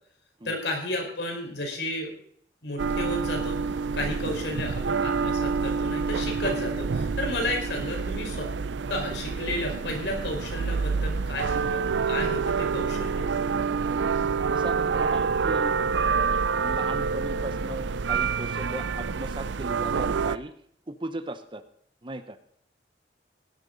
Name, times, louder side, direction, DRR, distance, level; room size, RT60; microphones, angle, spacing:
voice 1, 0.4-2.1 2.6-8.5 8.9-13.3, left 1 dB, 75° left, 2 dB, 4.8 m, -32 dB
sound 1, 2.8-20.4, right 5 dB, 85° right, 0.5 m, -27 dB
voice 2, 14.5-15.8 16.0-20.5 20.9-21.6 22.0-22.4, right 1 dB, 25° right, 10 dB, 0.9 m, -37 dB
17.0 x 12.5 x 4.0 m, 0.66 s
head